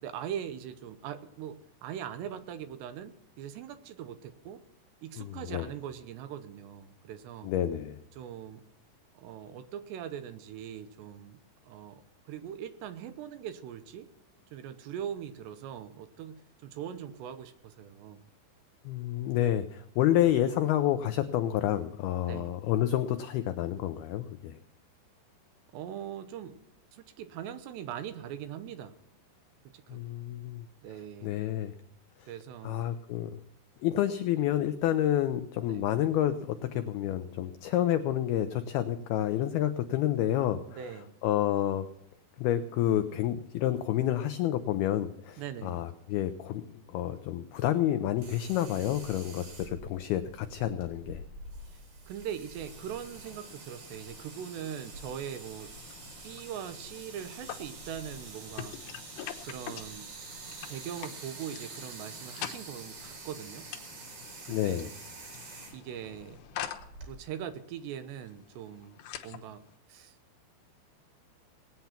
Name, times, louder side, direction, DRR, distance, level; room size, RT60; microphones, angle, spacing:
voice 1, 0.0-4.6 5.0-7.6 8.1-8.6 9.2-14.1 14.5-18.2 22.3-22.6 25.7-26.6 26.9-29.0 29.7-30.0 30.8-31.4 32.3-32.8 35.7-35.9 40.7-41.2 45.4-45.9 51.7-55.7 56.2-58.8 59.4-60.1 60.7-63.7 64.5-65.0 65.7-66.4 67.0-69.6 69.9-70.2, right 9 dB, 75° right, 11 dB, 2.9 m, -41 dB
voice 2, 5.2-5.7 7.4-8.0 18.9-24.6 29.9-30.6 31.2-31.7 32.6-33.4 33.8-40.6 41.2-41.9 42.4-51.2 64.5-64.9, left 12 dB, 90° left, 9 dB, 2.2 m, -29 dB
sound 1, 48.2-67.1, right 3 dB, 55° right, 5.0 m, -47 dB
sound 2, 52.6-69.8, left 10 dB, 70° left, 2.4 m, -46 dB
19.0 x 9.3 x 5.8 m, 0.82 s
omnidirectional pair, 5.3 m